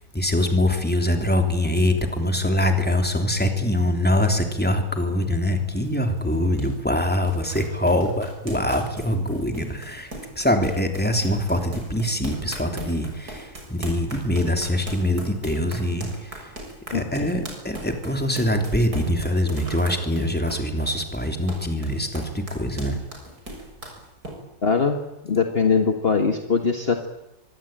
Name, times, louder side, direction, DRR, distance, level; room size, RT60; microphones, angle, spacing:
voice 1, 0.1-10.1 10.3-16.5 16.9-23.0, left 1 dB, 5° left, 4 dB, 3.3 m, -23 dB
sound 1, 5.4-24.3, right 1 dB, 75° right, 7.3 m, -39 dB
voice 2, 24.6-25.0 25.2-27.1, left 5 dB, 40° left, 5 dB, 1.8 m, -21 dB
24.0 x 24.0 x 9.2 m, 0.92 s
omnidirectional pair, 1.6 m